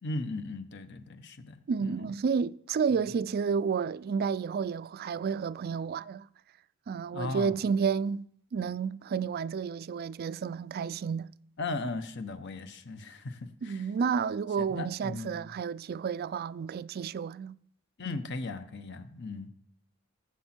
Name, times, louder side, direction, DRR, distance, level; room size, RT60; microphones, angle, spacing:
voice 1, 0.0-2.1 7.1-7.6 11.6-13.9 14.7-15.5 18.0-19.5, left 3 dB, 60° left, 1.0 m, -37 dB
voice 2, 1.7-6.3 6.9-11.3 13.6-17.6, right 6 dB, 50° right, 0.3 m, -31 dB
17.5 x 7.4 x 4.4 m
head